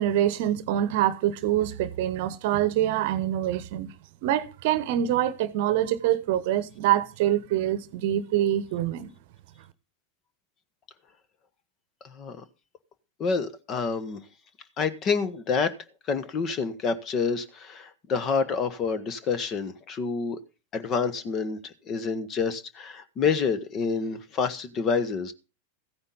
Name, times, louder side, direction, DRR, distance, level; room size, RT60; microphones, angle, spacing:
voice 1, 0.0-3.9 4.2-9.1, right 12 dB, 50° right, 1.0 m, -25 dB
voice 2, 12.0-12.4 13.2-14.2 14.8-15.7 16.0-20.4 20.7-25.3, left 5 dB, 30° left, 1.3 m, -28 dB
15.0 x 9.6 x 4.0 m
figure-of-eight pair, 90°, 0 cm